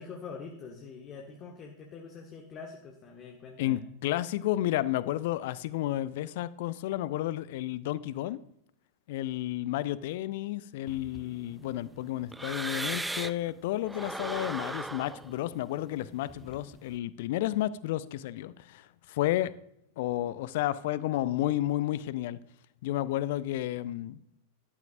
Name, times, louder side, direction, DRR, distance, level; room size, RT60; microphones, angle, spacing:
voice 1, 0.0-3.8, left 5 dB, 30° left, 1 dB, 1.5 m, -44 dB
voice 2, 3.6-8.4 9.1-19.5 20.0-22.4 22.8-24.2, left 14 dB, 50° left, 18 dB, 0.5 m, -31 dB
sound 1, 10.9-13.5 13.8-16.9, right 2 dB, 5° right, 0.3 m, -39 dB
12.0 x 12.0 x 2.6 m, 0.76 s
figure-of-eight pair, 90°, 0 cm